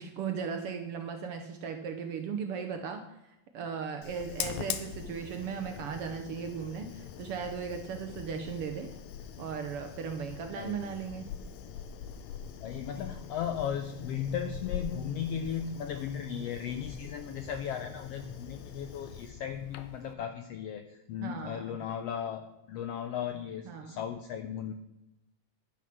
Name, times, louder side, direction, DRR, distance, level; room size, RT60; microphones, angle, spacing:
voice 1, 0.0-3.0 3.5-8.9 9.4-11.3 21.2-21.8 23.7-24.0, right 6 dB, 75° right, 6 dB, 1.3 m, -37 dB
Fire, 4.0-20.1, left 8 dB, 70° left, 1.9 m, -43 dB
voice 2, 10.6-10.9 12.6-24.7, left 8 dB, 85° left, 8 dB, 1.4 m, -36 dB
11.0 x 9.3 x 6.0 m, 0.92 s
omnidirectional pair, 3.6 m